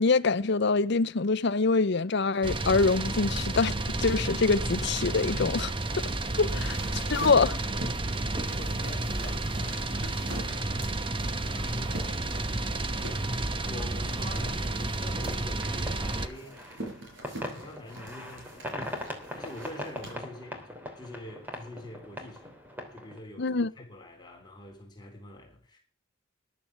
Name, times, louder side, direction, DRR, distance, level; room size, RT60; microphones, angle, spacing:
voice 1, 0.0-5.7 6.4-6.8 7.1-7.6 23.4-23.7, left 4 dB, 60° left, 0.7 m, -25 dB
sound 1, 2.4-16.3, right 2 dB, 25° right, 1.0 m, -31 dB
sound 2, 6.4-20.1, right 1 dB, 70° right, 5.4 m, -45 dB
voice 2, 6.5-7.1 8.3-11.1 11.4-12.3 13.4-16.6 17.5-22.6 22.9-25.8, left 1 dB, 20° left, 3.6 m, -46 dB
sound 3, 13.7-23.2, left 1 dB, 10° right, 3.1 m, -41 dB
14.0 x 11.0 x 6.0 m
head